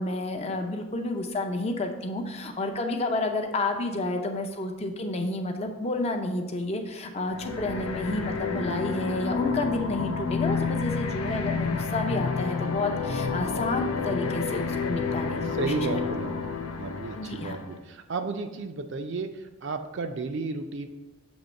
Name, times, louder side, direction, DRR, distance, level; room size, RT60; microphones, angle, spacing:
voice 1, 0.0-15.7 17.1-17.6, left 2 dB, 30° left, 3 dB, 0.5 m, -30 dB
sound 1, 7.3-17.8, left 5 dB, 90° left, 0.5 m, -30 dB
voice 2, 15.5-20.9, right 3 dB, 55° right, 7 dB, 0.4 m, -33 dB
7.1 x 3.0 x 5.1 m, 1.1 s
head